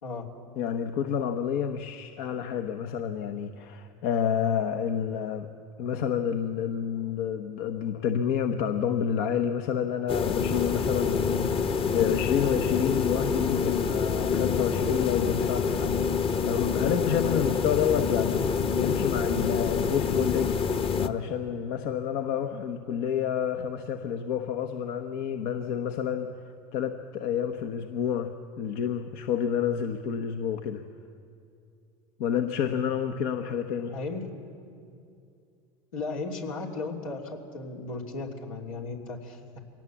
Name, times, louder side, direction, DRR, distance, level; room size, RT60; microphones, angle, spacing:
voice 1, 0.6-5.5 5.8-16.0 16.4-20.6 21.0-26.3 26.7-30.8 32.2-33.9, left 8 dB, 65° left, 6 dB, 1.1 m, -29 dB
sound 1, 10.1-21.1, left 6 dB, 35° left, 1.2 m, -27 dB
voice 2, 33.9-34.3 35.9-39.6, left 3 dB, 85° left, 0 dB, 3.1 m, -35 dB
23.5 x 18.0 x 7.3 m, 2.5 s
hypercardioid pair, 85°, 17 cm